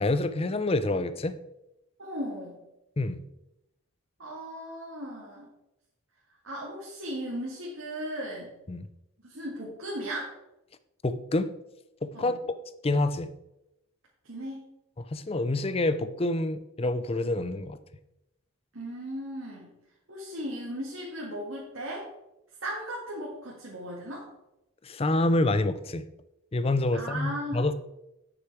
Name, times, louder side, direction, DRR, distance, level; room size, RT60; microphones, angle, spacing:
voice 1, 0.0-1.4 3.0-3.2 8.7-8.9 11.0-11.5 12.0-12.4 12.8-13.3 15.0-17.8 24.8-26.0 26.5-27.7, left 2 dB, 25° left, 13 dB, 0.5 m, -27 dB
voice 2, 2.0-2.6 4.2-5.5 6.4-8.5 9.2-10.3 12.1-12.4 14.2-14.7 18.7-19.7 20.1-22.1 22.6-24.3 26.9-27.6, equal, 65° right, -4 dB, 2.0 m, -36 dB
9.2 x 6.8 x 4.6 m, 0.89 s
head